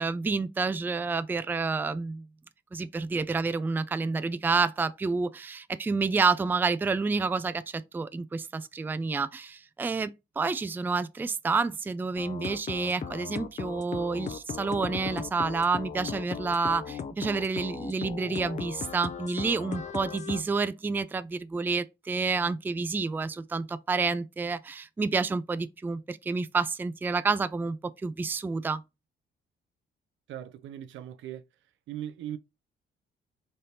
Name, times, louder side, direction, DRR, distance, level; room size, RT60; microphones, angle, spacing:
voice 1, 0.0-2.2 2.7-28.8, right 4 dB, 10° right, 0.3 m, -29 dB
sound 1, 12.2-20.4, left 6 dB, 35° left, 0.5 m, -37 dB
voice 2, 30.3-31.4 31.9-32.4, right 11 dB, 75° right, 0.5 m, -39 dB
4.1 x 3.3 x 2.7 m
cardioid pair, 90°, 20 cm